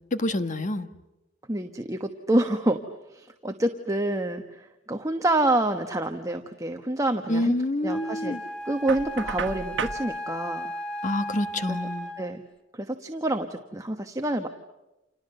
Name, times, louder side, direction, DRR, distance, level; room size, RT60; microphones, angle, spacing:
voice 1, 0.1-0.9 7.3-8.4 11.0-12.1, left 1 dB, 45° left, 1.4 m, -27 dB
voice 2, 1.5-2.8 3.1-7.5 7.8-8.4 8.6-10.7 11.7-11.8 12.2-12.4 12.7-14.5, right 1 dB, 20° right, 1.2 m, -27 dB
Wind instrument woodwind instrument, 7.9-12.4, equal, 5° left, 1.9 m, -36 dB
Knock, 8.9-10.0, right 5 dB, 85° right, 1.4 m, -32 dB
30.0 x 28.0 x 6.8 m
head